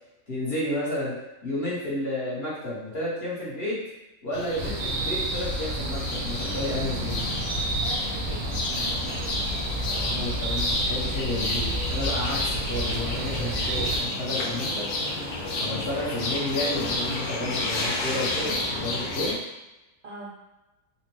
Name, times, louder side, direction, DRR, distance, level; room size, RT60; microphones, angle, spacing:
voice 1, 0.3-1.1 1.4-3.8 4.2-7.2 10.1-14.9 15.6-19.3, left 1 dB, 45° left, -8 dB, 1.2 m, -31 dB
sound 1, 4.3-19.3, left 2 dB, 90° left, 1.2 m, -31 dB
sound 2, 4.6-14.0, right 1 dB, 85° right, 1.1 m, -30 dB
voice 2, 7.8-10.1 20.0-20.4, right 3 dB, 65° right, -5 dB, 0.6 m, -43 dB
4.0 x 2.2 x 2.9 m, 1.0 s
omnidirectional pair, 1.5 m